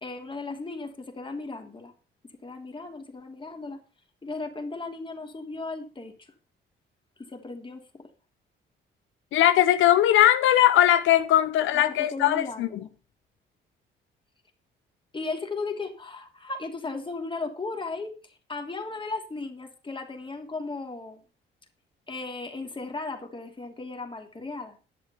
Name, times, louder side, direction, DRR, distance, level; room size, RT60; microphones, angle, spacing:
voice 1, 0.0-1.9 2.4-3.8 4.2-6.3 7.2-8.1 11.7-12.9 15.1-21.2 22.1-24.8, left 3 dB, 25° left, 2.9 m, -36 dB
voice 2, 9.3-12.8, left 12 dB, 85° left, 0.7 m, -20 dB
11.0 x 7.8 x 5.7 m
cardioid pair, 90°, 20 cm